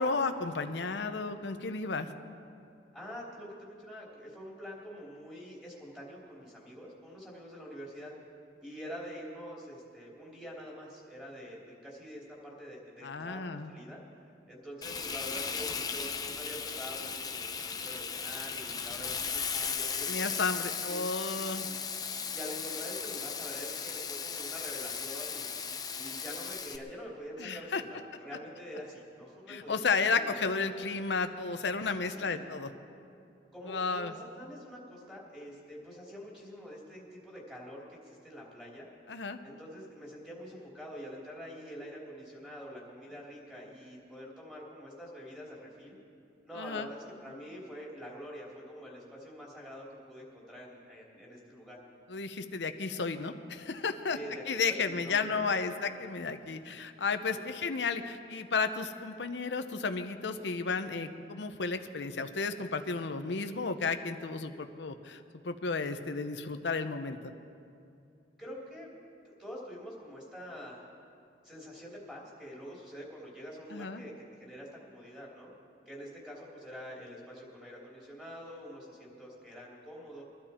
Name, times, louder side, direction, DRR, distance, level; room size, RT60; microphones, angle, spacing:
voice 1, 0.0-2.1 13.0-13.7 20.1-21.7 27.4-27.8 29.5-32.7 33.7-34.1 39.1-39.4 46.6-46.9 52.1-54.2 54.5-67.2 73.7-74.0, left 4 dB, 80° left, 8 dB, 0.8 m, -33 dB
voice 2, 2.9-8.1 8.6-14.0 14.5-20.3 20.8-21.0 21.5-21.8 22.3-25.5 26.0-29.8 30.1-30.4 30.7-31.1 32.0-32.4 33.5-38.9 39.4-46.0 46.4-51.8 54.1-55.6 57.3-57.4 68.4-68.9 69.2-70.9 71.4-75.5 75.8-80.2, equal, 5° right, -5 dB, 3.2 m, -46 dB
Frying (food), 14.8-26.8, left 6 dB, 20° left, 0.7 m, -36 dB
22.5 x 12.5 x 4.4 m, 2.5 s
head